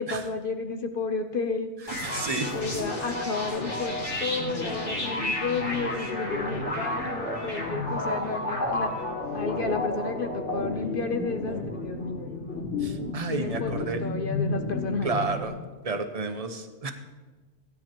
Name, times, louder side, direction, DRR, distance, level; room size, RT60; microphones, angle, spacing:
voice 1, 0.0-1.7 2.1-9.0 9.3-12.3 13.3-15.3, left 4 dB, 50° left, 7 dB, 0.8 m, -32 dB
sound 1, 1.9-15.5, left 2 dB, 70° left, 2.6 m, -31 dB
voice 2, 1.9-2.5 12.8-14.0 15.0-15.5 15.8-16.9, right 4 dB, 35° right, 7 dB, 0.7 m, -31 dB
16.5 x 9.4 x 3.0 m, 1.3 s
omnidirectional pair, 1.3 m